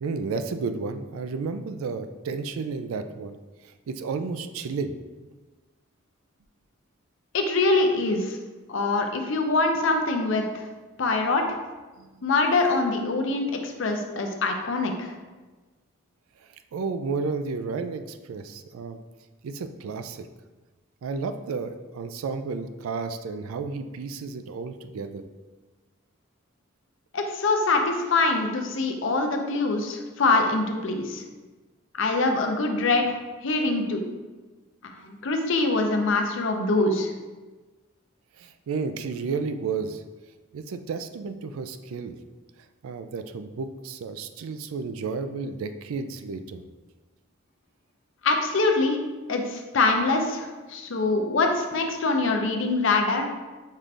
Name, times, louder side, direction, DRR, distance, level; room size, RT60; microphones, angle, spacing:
voice 1, 0.0-3.4 3.6-4.9 12.0-12.1 16.4-19.0 19.4-20.3 21.0-25.3 38.4-40.0 40.5-42.1 42.8-46.6, right 4 dB, 90° right, 9 dB, 0.3 m, -32 dB
voice 2, 7.3-8.4 8.7-10.6 11.0-11.4 12.2-15.1 27.1-31.2 31.9-34.1 35.0-37.1 48.2-49.0 49.3-53.3, left 3 dB, 65° left, 4 dB, 0.6 m, -24 dB
5.4 x 2.5 x 3.3 m, 1.3 s
head